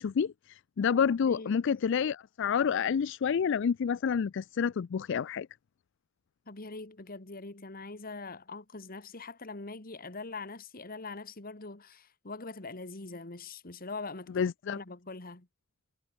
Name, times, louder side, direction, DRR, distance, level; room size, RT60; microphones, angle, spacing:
voice 1, 0.0-5.5 14.4-14.8, left 7 dB, 65° left, 0.4 m, -29 dB
voice 2, 1.2-1.6 6.5-15.5, left 3 dB, 45° left, 2.0 m, -43 dB
head